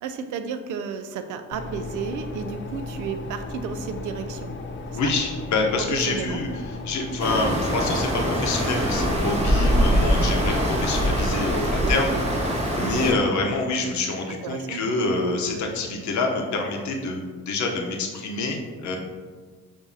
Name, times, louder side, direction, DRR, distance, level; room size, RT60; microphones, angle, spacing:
voice 1, 0.0-4.6 4.9-5.1 5.9-6.4 11.8-12.2 12.8-13.1 14.3-14.9, right 6 dB, 75° right, 9 dB, 0.5 m, -33 dB
sound 1, 1.5-12.6, left 3 dB, 40° left, 0.5 m, -35 dB
voice 2, 4.9-6.5 6.8-12.1 12.4-19.0, left 3 dB, 70° left, 2 dB, 0.8 m, -26 dB
sound 2, 7.2-13.1, equal, 20° right, 1.2 m, -23 dB
6.9 x 2.7 x 2.7 m, 1.5 s
cardioid pair, 90°, 30 cm